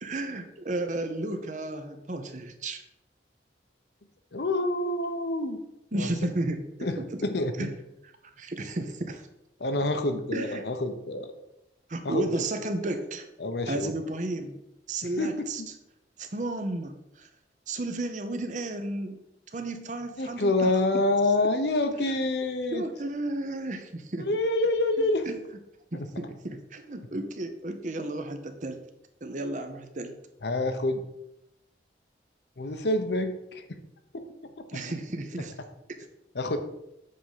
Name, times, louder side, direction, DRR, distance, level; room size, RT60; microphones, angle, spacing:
voice 1, 0.0-2.8 5.9-7.1 7.6-7.7 8.2-9.3 10.3-10.7 11.9-13.2 13.7-14.6 14.9-15.6 16.2-17.3 17.7-19.2 19.5-20.8 21.9-22.0 22.7-24.3 25.3-25.4 25.9-28.8 29.2-30.1 34.7-35.5, right 2 dB, 45° right, 7 dB, 0.8 m, -33 dB
voice 2, 4.3-5.6 5.9-6.1 6.8-7.7 9.6-11.3 12.0-12.3 13.4-13.9 15.2-15.3 15.6-15.7 20.2-22.8 24.3-25.3 25.9-26.1 30.4-31.0 32.6-33.8 34.1-34.2 34.6-34.7 36.3-36.6, left 2 dB, 70° left, 7 dB, 0.8 m, -27 dB
7.6 x 3.7 x 5.6 m, 0.86 s
head